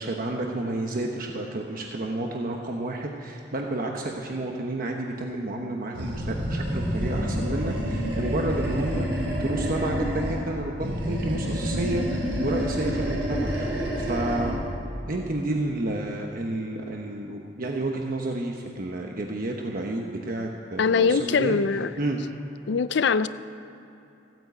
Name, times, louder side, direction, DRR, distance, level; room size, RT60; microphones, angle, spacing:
voice 1, 0.0-14.7 15.1-21.6 22.0-22.2, right 2 dB, 50° right, 1 dB, 1.0 m, -30 dB
Animal, 5.9-10.5 10.8-14.7, equal, 75° right, 4.3 m, -28 dB
voice 2, 20.8-21.9 22.7-23.3, left 5 dB, 70° left, 14 dB, 0.5 m, -22 dB
15.5 x 9.1 x 8.1 m, 2.9 s
head